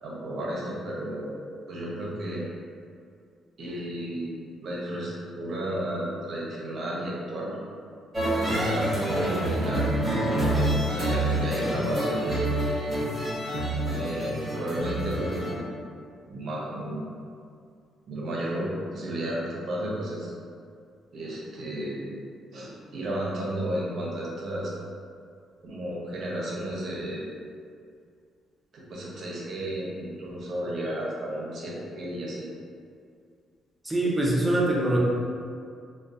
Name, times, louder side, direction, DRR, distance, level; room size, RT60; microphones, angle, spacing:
voice 1, 0.0-1.4 1.7-2.5 3.6-7.6 8.2-8.9 9.2-9.9 10.2-12.7 13.9-15.6 16.3-17.0 18.1-20.3 21.1-22.1 22.5-24.7 25.6-27.3 28.7-32.5, right 1 dB, 60° right, -4 dB, 0.6 m, -33 dB
sound 1, 8.1-15.5, right 1 dB, 25° right, 1.0 m, -27 dB
voice 2, 33.8-35.0, right 1 dB, 10° right, -4 dB, 0.5 m, -23 dB
2.4 x 2.2 x 2.3 m, 2.3 s
cardioid pair, 90°, 0 cm